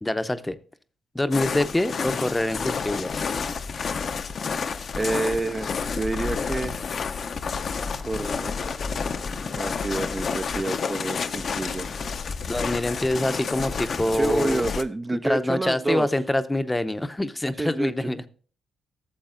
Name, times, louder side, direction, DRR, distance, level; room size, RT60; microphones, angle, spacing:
voice 1, 0.0-0.6 1.1-3.2 12.5-14.6 15.1-18.3, left 1 dB, 15° left, 11 dB, 0.6 m, -25 dB
sound 1, 1.3-14.8, left 5 dB, 55° left, 0.5 m, -30 dB
voice 2, 4.9-6.9 8.0-8.5 9.4-12.0 14.1-16.1 17.6-18.1, right 2 dB, 25° right, 10 dB, 0.4 m, -28 dB
13.0 x 7.0 x 2.5 m, 0.41 s
supercardioid pair, 60°, 0 cm